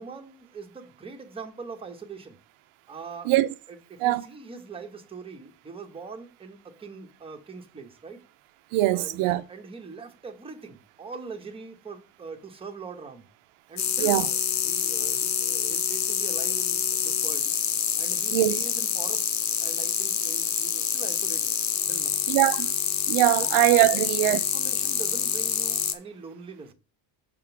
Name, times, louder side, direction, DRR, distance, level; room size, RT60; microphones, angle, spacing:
voice 1, 0.0-2.4 2.9-3.4 3.7-8.2 8.9-13.3 13.7-14.4 14.6-17.5 18.0-21.5 21.9-22.2 23.4-23.5 23.9-26.7, right 4 dB, 10° right, 0.9 m, -42 dB
voice 2, 8.7-9.4 14.0-14.3 18.3-18.6 22.3-22.7 23.1-24.4, right 16 dB, 85° right, 0.7 m, -22 dB
sound 1, 13.8-25.9, left 8 dB, 35° left, 0.7 m, -27 dB
6.7 x 3.7 x 5.8 m
cardioid pair, 155°, 49 cm